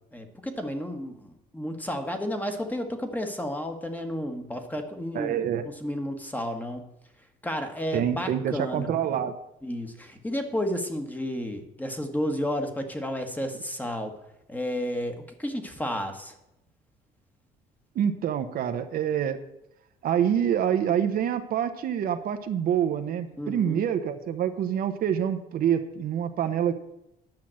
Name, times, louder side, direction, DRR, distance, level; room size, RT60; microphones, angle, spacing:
voice 1, 0.1-5.3 5.8-6.9 7.4-8.9 9.6-14.2 14.5-16.3 23.4-23.8, equal, 10° left, 6 dB, 1.4 m, -32 dB
voice 2, 5.1-5.6 7.9-9.3 17.9-19.4 20.0-26.7, right 9 dB, 60° right, 8 dB, 0.9 m, -26 dB
10.5 x 5.8 x 7.6 m, 0.83 s
cardioid pair, 110°, 17 cm